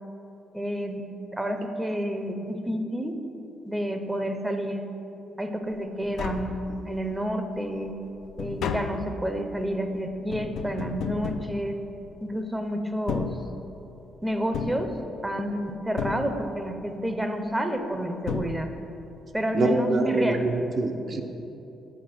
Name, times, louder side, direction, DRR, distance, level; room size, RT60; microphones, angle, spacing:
voice 1, 0.5-3.2 3.7-4.8 5.4-8.0 8.4-11.8 12.2-13.4 14.2-15.0 15.2-18.7 19.3-20.5, equal, 10° right, 6 dB, 0.6 m, -29 dB
Tap, 5.7-5.8 6.0-7.1 7.6-12.3 12.9-14.0 14.5-15.5 16.0-16.8 17.8-17.9 18.3-19.1 19.4-19.5, left 6 dB, 75° left, 0.4 m, -34 dB
voice 2, 19.5-21.2, right 2 dB, 55° right, 3 dB, 0.7 m, -25 dB
8.5 x 4.2 x 5.9 m, 3.0 s
cardioid pair, 90°, 0 cm